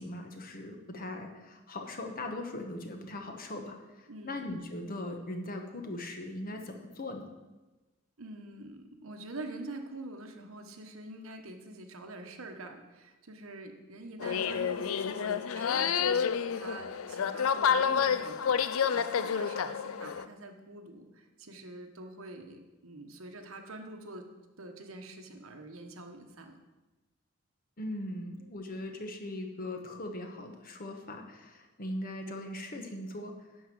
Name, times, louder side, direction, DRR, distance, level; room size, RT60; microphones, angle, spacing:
voice 1, 0.0-3.8 4.2-7.3 27.8-33.3, left 1 dB, 45° left, 4 dB, 1.2 m, -39 dB
voice 2, 4.1-4.4 8.2-24.3 24.6-26.6, right 2 dB, 75° right, 5 dB, 1.2 m, -45 dB
sound 1, 14.2-20.3, left 7 dB, 75° left, 0.4 m, -29 dB
11.5 x 4.7 x 7.7 m, 1.1 s
head